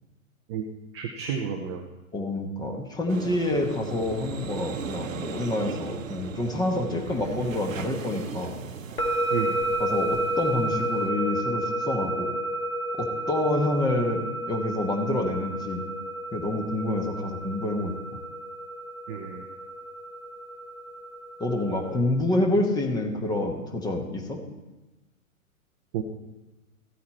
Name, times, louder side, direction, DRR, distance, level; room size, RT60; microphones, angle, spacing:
voice 1, 0.9-1.8 9.3-9.5 19.1-19.4 25.9-26.0, right 8 dB, 20° right, 3 dB, 0.6 m, -31 dB
voice 2, 2.1-8.6 9.8-12.4 12.9-15.8 16.3-18.0 21.4-24.4, left 1 dB, 10° left, 3 dB, 1.2 m, -27 dB
sound 1, 3.1-11.1, right 6 dB, 65° right, 0.9 m, -38 dB
sound 2, 9.0-22.0, right 1 dB, 85° left, 1.7 m, -31 dB
14.5 x 8.5 x 4.2 m, 1.1 s
figure-of-eight pair, 115°, 43 cm